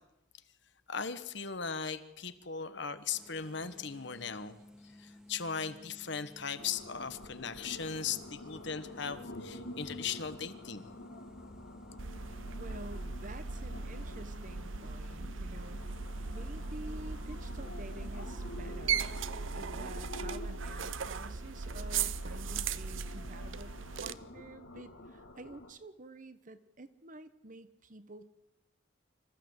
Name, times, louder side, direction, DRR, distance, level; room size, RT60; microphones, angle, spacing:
voice 1, 0.9-4.6 4.8-10.9, left 6 dB, 60° left, 11 dB, 1.3 m, -38 dB
sound 1, 3.1-19.2, left 1 dB, 5° right, 2.0 m, -56 dB
sound 2, 6.6-25.7, left 1 dB, 75° left, 2.3 m, -49 dB
sound 3, 12.0-24.1, right 5 dB, 70° right, 0.7 m, -38 dB
voice 2, 12.6-15.8 16.2-19.2 19.5-28.3, right 2 dB, 40° right, 12 dB, 1.1 m, -49 dB
25.5 x 14.5 x 8.0 m, 0.94 s
head